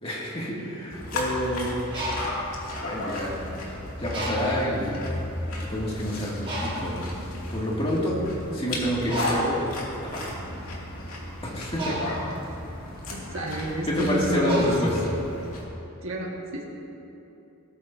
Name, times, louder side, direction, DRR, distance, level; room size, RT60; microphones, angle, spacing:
voice 1, 0.0-1.7 2.8-3.6 4.0-5.0 5.6-6.3 6.6-7.1 7.5-8.2 8.5-9.6 10.1-10.2 11.4-12.0 13.9-14.9, equal, 25° left, -5 dB, 2.3 m, -28 dB
sound 1, 0.9-15.6, left 1 dB, 75° left, 2.5 m, -34 dB
Bird, 1.7-3.6 4.1-4.8 5.5-5.6 5.9-15.6, equal, 25° right, 1.9 m, -35 dB
voice 2, 13.1-14.7 16.0-16.6, right 1 dB, 65° right, -1 dB, 1.8 m, -30 dB
17.5 x 13.5 x 2.8 m, 2.8 s
head